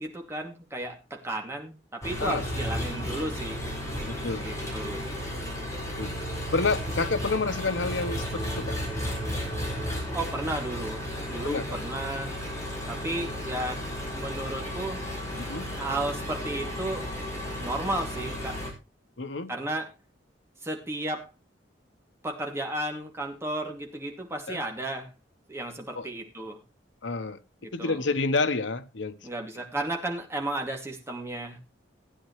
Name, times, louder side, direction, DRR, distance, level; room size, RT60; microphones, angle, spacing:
voice 1, 0.0-3.6 4.4-5.0 10.1-12.3 12.9-15.1 15.7-17.1 17.6-18.6 19.5-19.9 20.6-21.3 22.2-25.1 25.5-26.6 27.6-28.0 29.2-31.6, right 1 dB, 15° right, 2.5 m, -33 dB
Engine, 2.0-18.7, equal, 15° left, 5.1 m, -33 dB
voice 2, 4.0-4.5 5.8-6.2 6.5-8.8 11.4-11.8 15.4-15.7 19.2-19.5 24.5-24.6 25.9-26.1 27.0-27.4 27.7-29.2, left 3 dB, 90° left, 1.0 m, -29 dB
16.5 x 9.7 x 3.2 m
head